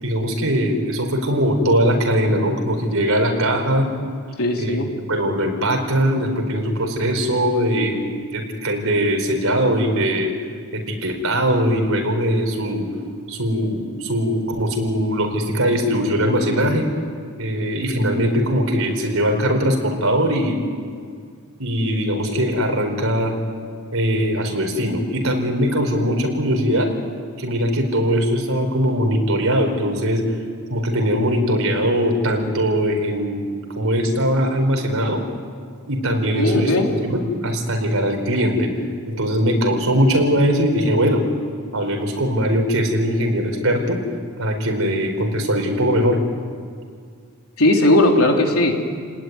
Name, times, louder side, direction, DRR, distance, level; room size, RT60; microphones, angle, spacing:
voice 1, 0.0-3.9 4.6-4.8 5.1-10.3 10.7-12.9 13.3-16.9 17.4-20.6 21.6-23.3 23.9-26.9 27.4-30.2 30.7-33.5 33.8-35.2 35.8-36.7 37.0-38.7 39.1-41.2 41.7-44.0 44.4-46.2, equal, 70° right, 4 dB, 4.7 m, -20 dB
voice 2, 4.4-4.9 36.4-36.9 47.6-48.7, left 1 dB, 75° left, 1 dB, 3.6 m, -17 dB
29.5 x 19.5 x 9.6 m, 2.2 s
head